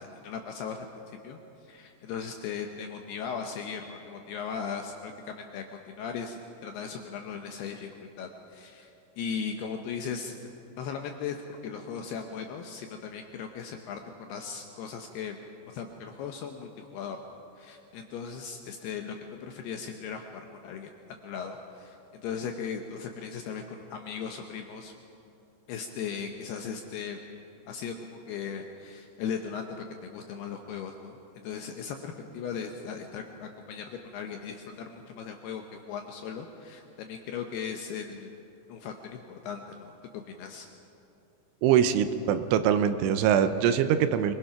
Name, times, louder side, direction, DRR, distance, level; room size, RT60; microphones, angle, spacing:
voice 1, 0.0-1.4 1.6-8.9 9.2-10.5 10.8-15.4 15.7-17.2 17.6-20.9 21.2-24.9 25.7-27.2 27.7-31.2 31.4-38.3 38.7-40.7, left 6 dB, 75° left, 4 dB, 2.4 m, -38 dB
voice 2, 41.6-44.3, right 9 dB, 80° right, 10 dB, 3.1 m, -23 dB
25.0 x 20.5 x 5.8 m, 2.7 s
omnidirectional pair, 5.6 m